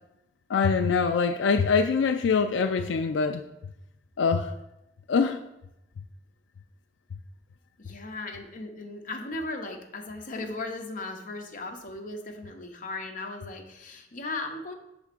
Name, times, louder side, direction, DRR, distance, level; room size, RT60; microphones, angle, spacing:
voice 1, 0.5-3.4 4.2-4.5 5.1-5.4, left 5 dB, 90° left, 7 dB, 0.4 m, -24 dB
voice 2, 7.8-14.7, left 2 dB, 45° left, 3 dB, 0.9 m, -37 dB
6.4 x 3.5 x 5.9 m, 0.87 s
head